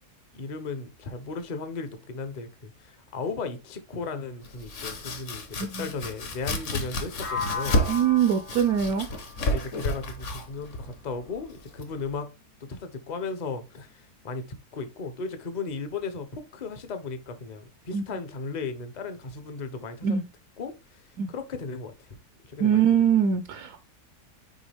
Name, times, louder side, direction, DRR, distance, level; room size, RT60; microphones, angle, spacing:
voice 1, 0.3-7.8 9.5-12.3 12.6-20.2 20.6-22.1 22.5-23.0, left 4 dB, 35° left, 0.8 m, -36 dB
Domestic sounds home sounds, 4.4-12.1, left 1 dB, 55° left, 1.4 m, -32 dB
sound 1, 7.2-11.1, left 4 dB, 85° left, 1.9 m, -37 dB
voice 2, 7.9-9.1 17.9-18.0 20.0-20.2 21.2-21.3 22.6-23.8, right 8 dB, 75° right, 1.1 m, -23 dB
6.3 x 4.7 x 3.4 m
omnidirectional pair, 1.7 m